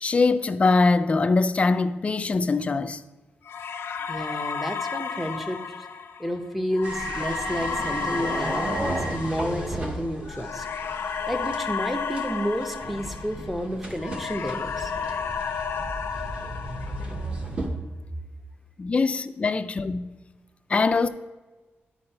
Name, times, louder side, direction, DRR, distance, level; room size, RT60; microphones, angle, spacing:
voice 1, 0.0-3.0 18.8-20.2 20.7-21.1, left 3 dB, 30° left, 0.3 m, -22 dB
sound 1, 3.5-13.7 14.0-17.4, left 6 dB, 70° left, 0.6 m, -33 dB
voice 2, 4.1-5.6 6.2-10.7 11.3-14.9, equal, 5° right, 0.7 m, -30 dB
sound 2, 6.8-17.7, right 1 dB, 25° right, 1.0 m, -34 dB
10.0 x 4.7 x 4.4 m
wide cardioid pair, 150°, 4 cm